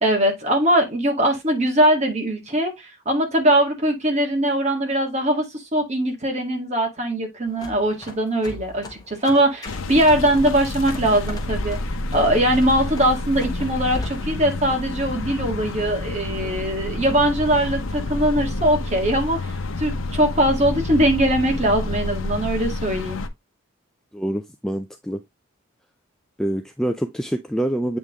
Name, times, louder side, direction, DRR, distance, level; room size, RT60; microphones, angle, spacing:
voice 1, 0.0-11.8 12.1-23.2, right 1 dB, 30° right, 1.7 m, -21 dB
sound 1, 7.5-14.3, left 2 dB, 20° left, 1.2 m, -39 dB
sound 2, 9.6-23.3, left 2 dB, 80° left, 0.8 m, -29 dB
voice 2, 24.1-25.2 26.4-28.0, right 1 dB, ahead, 0.3 m, -26 dB
8.1 x 3.5 x 3.5 m
head